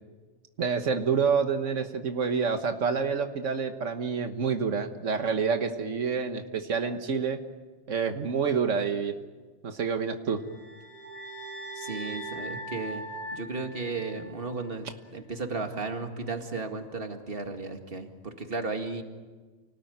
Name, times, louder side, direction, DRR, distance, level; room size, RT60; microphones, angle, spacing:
voice 1, 0.6-7.4 7.9-9.1 9.6-10.4, right 5 dB, 90° right, 6 dB, 1.7 m, -28 dB
sound 1, 10.4-14.7, right 1 dB, 75° left, 5.0 m, -40 dB
voice 2, 11.8-13.0 13.3-19.0, right 3 dB, 50° right, 5 dB, 2.3 m, -34 dB
29.5 x 19.0 x 9.3 m, 1.4 s
omnidirectional pair, 1.2 m